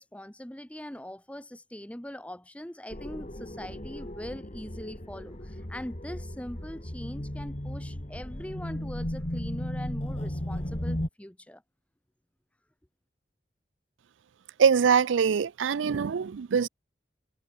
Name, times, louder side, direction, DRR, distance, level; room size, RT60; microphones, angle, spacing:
voice 1, 0.0-11.6, equal, 5° left, 1.0 m, -42 dB
sound 1, 2.9-11.1, left 1 dB, 35° left, 2.4 m, -35 dB
voice 2, 14.6-16.7, right 6 dB, 85° right, 0.4 m, -23 dB
head